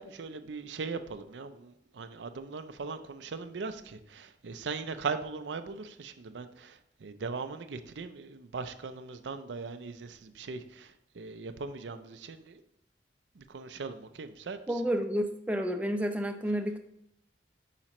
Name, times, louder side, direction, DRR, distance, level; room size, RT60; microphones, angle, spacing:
voice 1, 0.0-12.6 13.3-14.8, right 4 dB, 85° right, 9 dB, 0.5 m, -39 dB
voice 2, 14.7-16.8, equal, 10° right, 5 dB, 0.5 m, -30 dB
8.5 x 4.9 x 3.0 m, 0.77 s
head